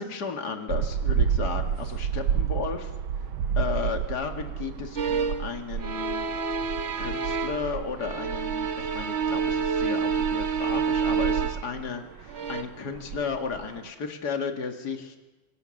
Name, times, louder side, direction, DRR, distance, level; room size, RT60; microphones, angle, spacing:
voice 1, 0.0-2.9 3.6-6.3 7.0-15.2, left 5 dB, 55° left, 4 dB, 2.6 m, -34 dB
sound 1, 0.7-13.9, right 8 dB, 85° right, 1.8 m, -31 dB
sound 2, 5.0-5.5 5.8-7.7 8.0-11.8 12.3-12.6, right 5 dB, 40° right, 1.2 m, -28 dB
27.0 x 24.5 x 6.6 m, 1.1 s
omnidirectional pair, 2.2 m